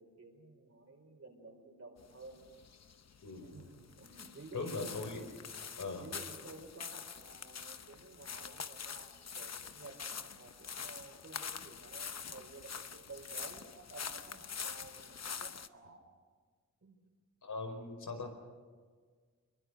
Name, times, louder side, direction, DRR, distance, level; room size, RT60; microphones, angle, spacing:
voice 1, 0.0-2.4 3.4-5.1 6.0-16.0 16.8-17.0, right 3 dB, 55° right, 2 dB, 5.1 m, -53 dB
sound 1, 2.0-15.7, left 6 dB, 60° left, 0.9 m, -45 dB
voice 2, 3.2-3.5 4.5-5.3 5.8-6.0 17.4-18.3, left 3 dB, 80° left, 4 dB, 4.9 m, -40 dB
25.5 x 22.5 x 6.6 m, 1.6 s
wide cardioid pair, 100°, 30 cm